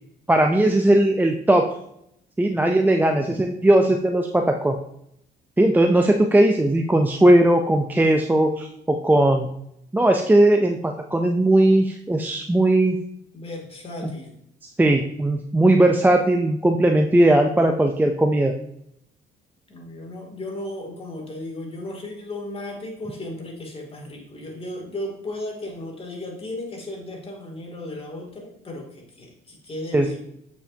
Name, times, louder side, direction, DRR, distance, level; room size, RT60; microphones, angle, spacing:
voice 1, 0.3-1.6 2.4-4.8 5.6-9.5 9.9-13.0 14.0-14.1 14.8-18.5 29.9-30.1, right 1 dB, 10° right, 3 dB, 0.7 m, -18 dB
voice 2, 13.3-14.4 16.2-16.3 19.7-30.2, left 1 dB, 30° left, 0 dB, 2.8 m, -35 dB
8.2 x 7.0 x 2.9 m, 0.76 s
cardioid pair, 95°, 19 cm